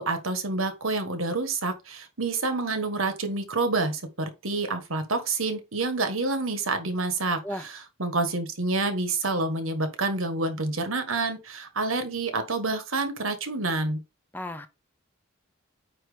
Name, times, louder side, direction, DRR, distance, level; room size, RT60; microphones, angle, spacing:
voice 1, 0.0-14.0, right 3 dB, 75° right, 1.5 m, -28 dB
voice 2, 14.3-14.7, left 1 dB, 10° left, 0.6 m, -34 dB
9.0 x 3.0 x 5.0 m
head